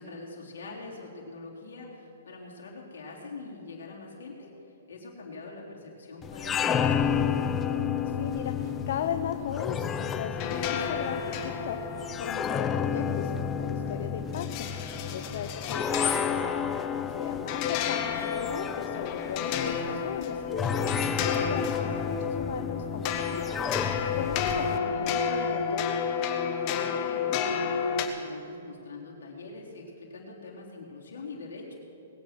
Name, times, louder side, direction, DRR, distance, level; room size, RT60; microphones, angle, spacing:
voice 1, 0.0-7.2 15.1-15.4 19.2-19.7 24.1-24.4 26.6-31.8, left 3 dB, 80° left, -2 dB, 3.5 m, -44 dB
sound 1, 6.2-24.8, left 7 dB, 20° left, 0.6 m, -31 dB
voice 2, 8.0-11.8 12.2-14.7 15.1-16.6 17.1-26.0, left 9 dB, 60° left, 8 dB, 0.6 m, -37 dB
sound 2, 10.3-28.1, left 6 dB, 35° left, 1.3 m, -32 dB
20.5 x 8.7 x 6.0 m, 2.8 s
hypercardioid pair, 140°, 0 cm